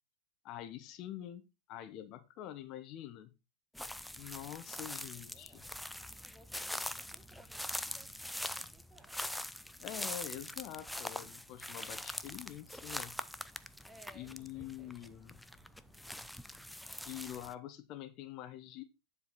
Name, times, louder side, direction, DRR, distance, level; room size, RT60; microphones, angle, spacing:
voice 1, 0.4-1.4 1.7-3.3 4.2-5.6 9.8-13.2 14.1-15.4 17.0-18.8, left 12 dB, 50° left, 0.9 m, -46 dB
sound 1, 3.8-17.5, left 1 dB, 5° left, 0.5 m, -43 dB
voice 2, 4.6-5.6 6.1-9.1 13.8-14.3 14.5-15.0, right 2 dB, 15° right, 1.5 m, -62 dB
sound 2, 6.7-16.7, right 6 dB, 45° right, 3.7 m, -68 dB
10.5 x 5.0 x 4.0 m
hypercardioid pair, 90°, 0 cm